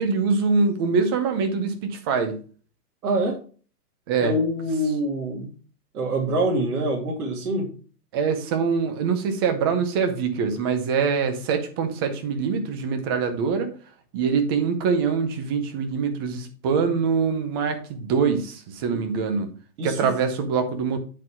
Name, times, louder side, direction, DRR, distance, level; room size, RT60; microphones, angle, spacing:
voice 1, 0.0-2.4 4.1-4.4 8.1-13.7 14.1-19.5 19.8-21.0, right 5 dB, 15° right, 8 dB, 0.5 m, -24 dB
voice 2, 3.0-3.4 4.2-5.5 5.9-7.7 19.8-20.1, right 1 dB, 65° right, -2 dB, 2.6 m, -25 dB
10.0 x 4.0 x 4.4 m, 0.40 s
hypercardioid pair, 160°, 47 cm